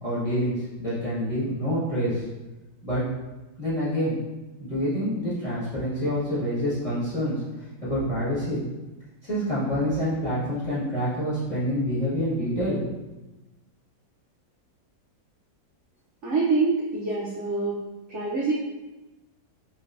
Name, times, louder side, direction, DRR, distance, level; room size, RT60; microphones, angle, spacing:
voice 1, 0.0-2.2 2.8-3.0 3.6-4.2 4.6-7.4 7.8-8.6 9.2-12.8, equal, 20° left, -11 dB, 1.2 m, -27 dB
voice 2, 16.2-17.8 18.1-18.5, right 3 dB, 75° right, -6 dB, 0.6 m, -25 dB
3.2 x 3.0 x 2.4 m, 1.1 s
omnidirectional pair, 1.9 m